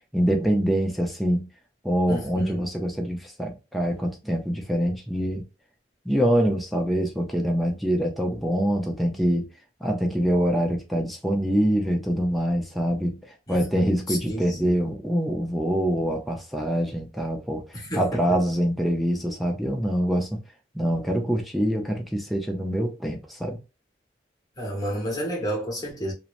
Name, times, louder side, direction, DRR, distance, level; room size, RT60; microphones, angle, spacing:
voice 1, 0.1-1.5 1.8-5.4 6.1-9.5 9.8-17.7 17.9-20.4 20.7-23.6, equal, ahead, 0.4 m, -25 dB
voice 2, 2.1-2.7 13.5-14.7 17.7-18.4 24.6-26.1, equal, 20° left, 1.0 m, -31 dB
2.8 x 2.0 x 2.4 m
head